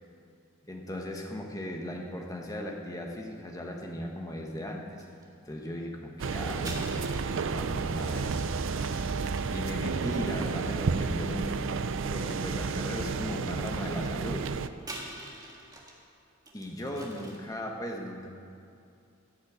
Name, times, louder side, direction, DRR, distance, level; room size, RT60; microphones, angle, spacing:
voice 1, 0.6-5.1 5.4-8.4 8.7-9.1 9.5-11.7 12.1-14.5 16.5-18.3, equal, 15° left, 1 dB, 1.2 m, -37 dB
sound 1, 5.0-5.2 6.6-11.3 11.9-12.5 12.9-13.0 14.8-16.0 16.5-17.5, right 2 dB, 20° right, 1.6 m, -46 dB
sound 2, 6.2-14.7, right 4 dB, 60° right, 0.5 m, -31 dB
15.0 x 6.4 x 8.0 m, 2.6 s
head